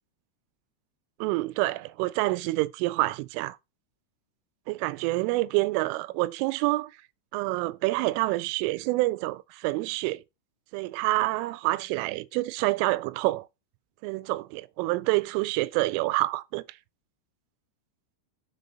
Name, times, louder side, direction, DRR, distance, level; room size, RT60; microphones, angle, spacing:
voice 1, 1.2-3.6 4.7-6.9 7.3-10.2 10.7-13.5 14.0-16.8, right 20 dB, 85° right, 3.1 m, -27 dB
6.7 x 4.5 x 5.4 m
omnidirectional pair, 5.6 m